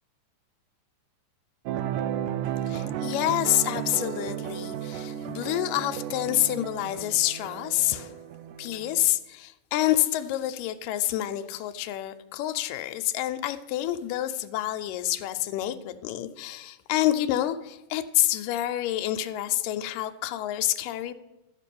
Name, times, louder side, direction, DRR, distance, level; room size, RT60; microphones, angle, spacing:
sound 1, 1.7-9.1, right 10 dB, 90° right, 2.2 m, -34 dB
voice 1, 2.7-8.2 8.6-21.1, left 14 dB, 90° left, 8 dB, 2.3 m, -28 dB
12.5 x 5.3 x 8.4 m, 0.98 s
omnidirectional pair, 3.7 m